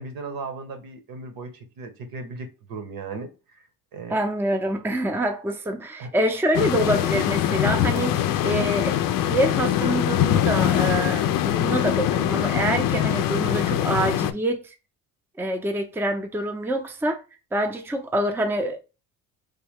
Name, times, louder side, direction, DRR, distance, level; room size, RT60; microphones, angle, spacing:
voice 1, 0.0-3.7 3.9-4.2 6.0-6.1, right 3 dB, 70° right, 1.1 m, -36 dB
voice 2, 4.1-14.7 15.4-17.2 17.5-18.8, right 1 dB, 5° right, 0.5 m, -26 dB
sound 1, 6.5-14.3, left 11 dB, 65° left, 0.5 m, -23 dB
3.4 x 2.2 x 3.5 m
cardioid pair, 95°, 36 cm